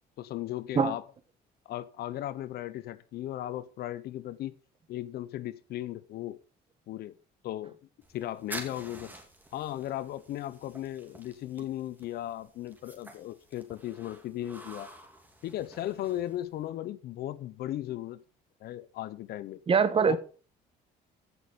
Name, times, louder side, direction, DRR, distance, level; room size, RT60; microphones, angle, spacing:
voice 1, 0.2-1.0 1.7-4.5 4.9-6.4 6.9-7.1 7.4-7.7 8.1-9.1 9.5-14.9 15.4-18.2 18.6-19.6 20.1-20.2, left 13 dB, 70° left, 0.7 m, -36 dB
sound 1, 8.0-16.7, right 1 dB, 10° right, 2.6 m, -48 dB
voice 2, 19.7-20.2, right 6 dB, 35° right, 1.3 m, -23 dB
15.0 x 6.2 x 5.2 m
cardioid pair, 110°, 17 cm